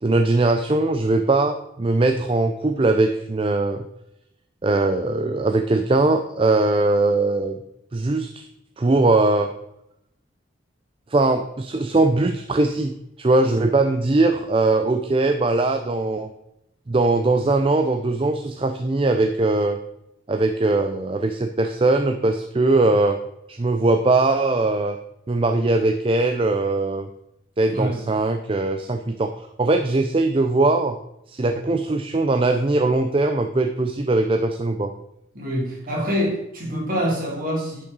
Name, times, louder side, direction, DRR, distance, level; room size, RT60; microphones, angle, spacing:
voice 1, 0.0-3.8 4.6-7.6 7.9-8.4 8.8-9.5 11.1-16.3 16.9-19.8 20.3-23.2 23.5-25.0 25.3-27.1 27.6-31.0 31.3-34.9, right 2 dB, 30° right, 7 dB, 0.4 m, -20 dB
voice 2, 27.7-28.0 35.3-37.8, equal, 45° right, -2 dB, 2.9 m, -25 dB
10.5 x 6.1 x 4.0 m, 0.84 s
head